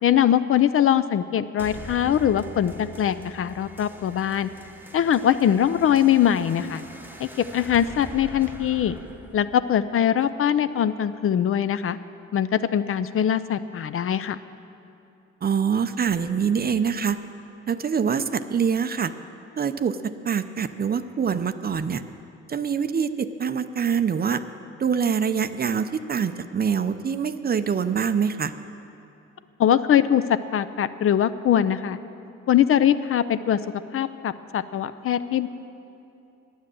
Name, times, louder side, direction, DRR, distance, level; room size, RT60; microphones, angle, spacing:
voice 1, 0.0-4.5 4.9-6.8 7.2-9.0 9.3-12.0 12.3-14.4 29.6-32.0 32.5-33.6 33.9-35.5, left 10 dB, 45° left, 13 dB, 0.4 m, -22 dB
sound 1, 1.6-10.6, right 2 dB, 5° right, 0.9 m, -43 dB
voice 2, 15.4-17.2 17.7-19.1 19.6-20.0 20.2-22.0 22.5-24.4 24.8-28.5, right 7 dB, 30° right, 11 dB, 0.5 m, -24 dB
10.0 x 9.4 x 7.6 m, 2.7 s
cardioid pair, 90°, 30 cm